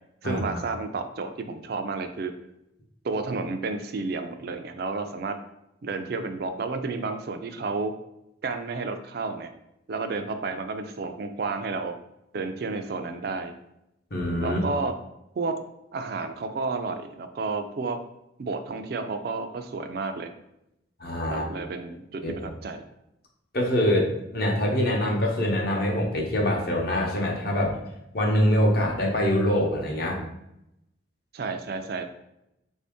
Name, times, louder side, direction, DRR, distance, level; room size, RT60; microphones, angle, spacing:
voice 1, 0.2-2.3 3.0-5.4 5.8-7.9 8.4-9.5 9.9-11.9 12.3-13.5 14.4-14.9 15.4-15.6 15.9-18.0 18.4-20.3 21.3-22.8 31.3-32.0, right 3 dB, 55° right, 7 dB, 0.3 m, -31 dB
voice 2, 14.1-14.6 21.0-21.5 22.2-22.3 23.5-27.8 28.1-30.2, equal, 55° left, 0 dB, 0.8 m, -24 dB
3.5 x 2.7 x 3.4 m, 0.83 s
head